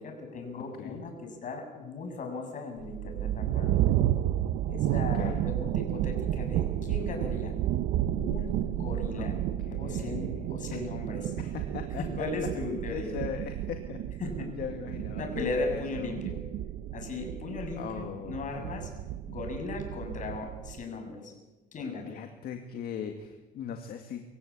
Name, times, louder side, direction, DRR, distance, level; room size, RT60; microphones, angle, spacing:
voice 1, 0.0-3.8 4.7-7.5 8.2-9.4 9.7-11.3 12.0-13.2 14.2-14.5 15.1-16.4 16.9-18.9 19.3-21.3 21.7-22.2, left 3 dB, 50° left, 4 dB, 7.2 m, -37 dB
sound 1, 2.8-20.8, right 12 dB, 80° right, 1.0 m, -32 dB
voice 2, 9.7-10.8 11.4-12.3 12.9-14.0 14.6-16.1 17.8-18.7 22.1-24.2, left 8 dB, 65° left, 5 dB, 2.2 m, -39 dB
25.0 x 15.5 x 8.7 m, 1.1 s
cardioid pair, 110°, 17 cm